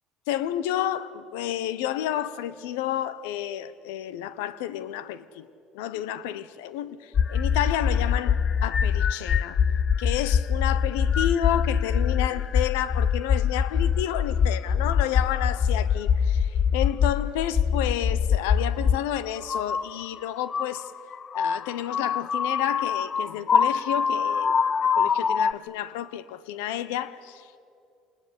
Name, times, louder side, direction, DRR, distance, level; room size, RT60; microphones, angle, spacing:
voice 1, 0.3-5.5 5.7-9.6 10.0-20.9 21.3-24.6 24.9-27.6, left 11 dB, 80° left, 1.0 m, -30 dB
sound 1, 7.1-19.0 19.4-25.5, left 7 dB, 40° left, 0.6 m, -24 dB
26.5 x 20.5 x 8.7 m
hypercardioid pair, 75°, 0 cm